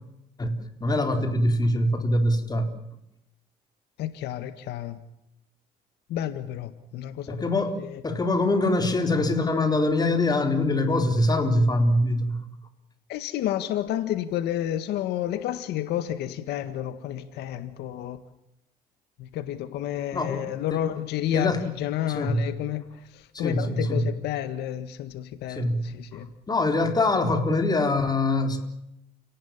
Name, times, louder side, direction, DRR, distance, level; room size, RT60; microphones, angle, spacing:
voice 1, 0.4-2.7 7.3-12.4 20.1-20.8 21.3-21.6 22.1-22.4 23.3-24.1 25.6-25.8 26.1-28.6, left 2 dB, 25° left, 4.1 m, -24 dB
voice 2, 4.0-5.0 6.1-8.0 13.1-18.2 19.2-26.3, left 12 dB, 80° left, 1.8 m, -31 dB
30.0 x 18.5 x 7.4 m
cardioid pair, 110°, 17 cm